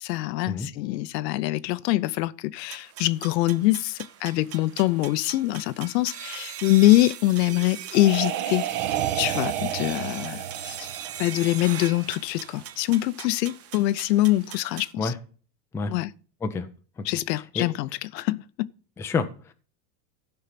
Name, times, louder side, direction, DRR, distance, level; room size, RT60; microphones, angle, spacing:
voice 1, 0.0-8.7 9.2-10.9 11.2-15.1 15.9-16.1 17.1-18.7, left 17 dB, 75° left, 0.7 m, -24 dB
sound 1, 2.7-14.9, right 10 dB, 30° right, 0.8 m, -40 dB
sound 2, 7.4-12.0, right 11 dB, 60° right, 1.4 m, -31 dB
voice 2, 17.0-17.7 19.0-19.5, left 4 dB, 5° left, 0.4 m, -29 dB
13.0 x 5.5 x 5.7 m
supercardioid pair, 135°, 50 cm